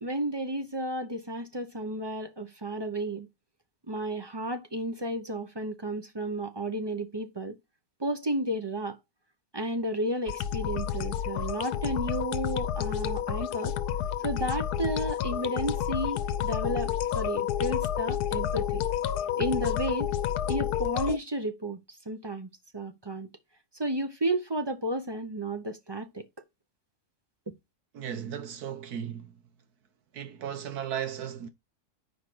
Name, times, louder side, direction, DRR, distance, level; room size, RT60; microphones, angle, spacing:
voice 1, 0.0-3.3 3.9-7.6 8.0-9.0 9.5-13.8 14.2-18.8 19.4-20.1 20.5-23.3 23.7-26.3 27.5-27.6, right 1 dB, 25° right, 0.5 m, -32 dB
sound 1, 10.3-21.2, left 10 dB, 90° left, 1.2 m, -30 dB
voice 2, 27.9-29.4 30.1-31.5, right 9 dB, 80° right, 1.5 m, -36 dB
5.1 x 5.0 x 6.0 m
omnidirectional pair, 1.6 m